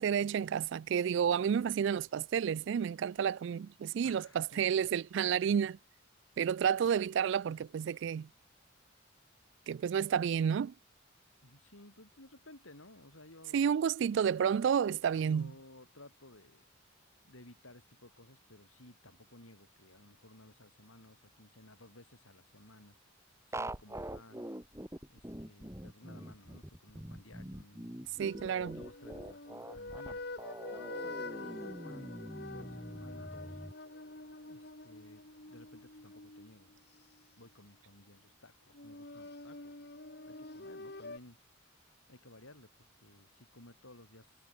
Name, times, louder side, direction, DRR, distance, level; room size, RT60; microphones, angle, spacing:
voice 1, 0.0-5.8 6.4-8.3 9.7-10.7 13.5-15.5 28.2-28.8, right 7 dB, 60° right, 0.3 m, -30 dB
voice 2, 4.0-4.9 11.4-13.8 15.1-16.6 17.2-23.0 23.5-24.5 25.1-30.2 30.7-32.1 32.5-33.6 34.5-36.8 37.4-39.7 40.2-41.4 42.1-44.4, left 1 dB, 85° left, 6.5 m, -57 dB
sound 1, 23.5-33.7, right 1 dB, 15° right, 2.9 m, -44 dB
sound 2, 28.2-37.2 38.7-41.2, left 2 dB, 55° left, 2.6 m, -46 dB
head